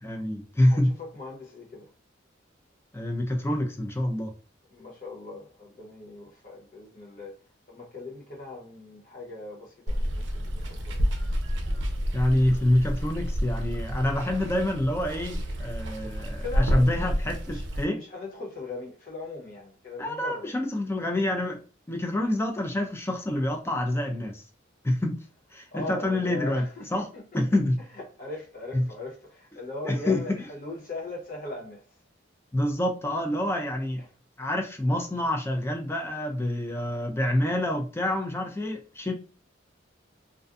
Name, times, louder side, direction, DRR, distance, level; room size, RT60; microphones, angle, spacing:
voice 1, 0.0-1.0 2.9-4.3 12.1-18.0 20.0-21.6 21.9-24.4 24.8-25.2 25.5-26.7 26.9-27.1 27.3-27.8 28.7-28.9 29.8-30.4 32.5-34.0 34.4-39.1, left 1 dB, 15° left, 0.3 m, -27 dB
voice 2, 0.6-1.9 4.7-7.4 7.7-11.0 16.4-17.0 17.5-17.6 18.0-20.5 25.7-27.6 27.9-31.9 34.0-34.1, left 2 dB, 45° left, 1.0 m, -40 dB
Water, 9.9-17.8, equal, 65° right, 0.5 m, -29 dB
2.4 x 2.2 x 2.5 m
head